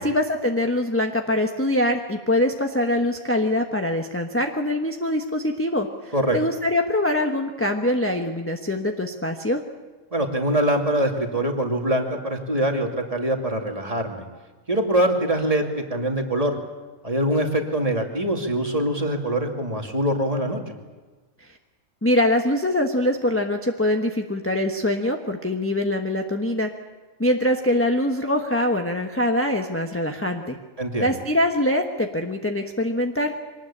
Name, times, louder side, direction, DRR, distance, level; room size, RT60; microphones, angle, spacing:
voice 1, 0.0-9.6 21.4-21.6 22.0-26.7 27.2-30.6 31.0-33.5, left 1 dB, 10° left, 3 dB, 1.2 m, -23 dB
voice 2, 10.1-14.2 14.7-15.6 15.9-16.6 17.0-20.6 30.8-31.1, right 1 dB, 25° right, 2 dB, 2.5 m, -23 dB
24.0 x 19.5 x 8.7 m, 1.3 s
omnidirectional pair, 1.5 m